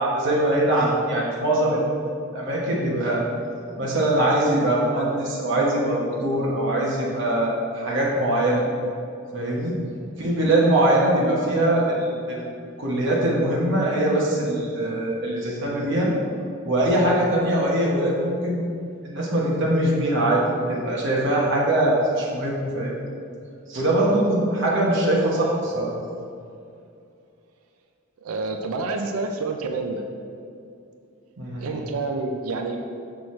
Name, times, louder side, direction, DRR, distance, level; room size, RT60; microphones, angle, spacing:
voice 1, 0.0-1.8 2.3-3.2 3.8-8.6 9.3-9.7 10.2-12.4 12.8-16.1 16.6-18.6 19.0-20.4 20.7-22.9 23.7-25.9 31.4-31.8, right 1 dB, 55° right, -4 dB, 1.1 m, -22 dB
voice 2, 28.2-30.0 31.6-32.8, right 3 dB, 85° right, 4 dB, 0.5 m, -28 dB
6.2 x 5.7 x 3.1 m, 2.5 s
head